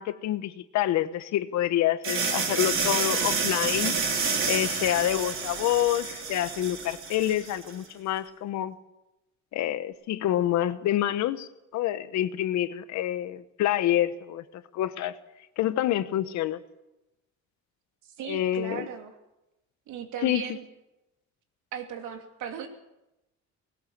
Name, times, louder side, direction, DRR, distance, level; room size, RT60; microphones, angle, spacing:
voice 1, 0.0-4.0 4.5-8.7 9.5-14.4 14.7-15.1 15.6-16.6 18.3-18.8 20.2-20.5, left 12 dB, 70° left, 13 dB, 1.1 m, -27 dB
sound 1, 2.0-7.7, right 5 dB, 45° right, 3.6 m, -29 dB
voice 2, 18.0-19.2 19.9-20.6 21.7-22.7, right 8 dB, 90° right, 4 dB, 2.9 m, -37 dB
20.0 x 18.0 x 7.4 m, 0.94 s
cardioid pair, 160°, 29 cm